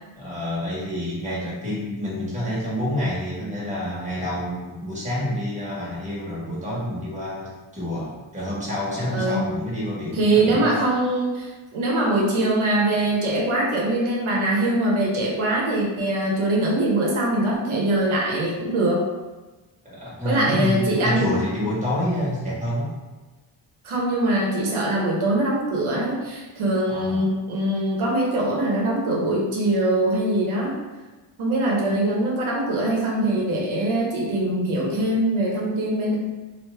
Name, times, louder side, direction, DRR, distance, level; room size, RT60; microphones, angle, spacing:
voice 1, 0.1-10.7 19.8-22.9 26.9-27.3, equal, 15° right, -7 dB, 1.3 m, -28 dB
voice 2, 9.1-9.5 10.1-19.1 20.2-21.3 23.8-30.7 31.4-36.2, right 1 dB, 80° right, -3 dB, 0.9 m, -22 dB
3.1 x 2.6 x 3.3 m, 1.2 s
wide cardioid pair, 105°, 48 cm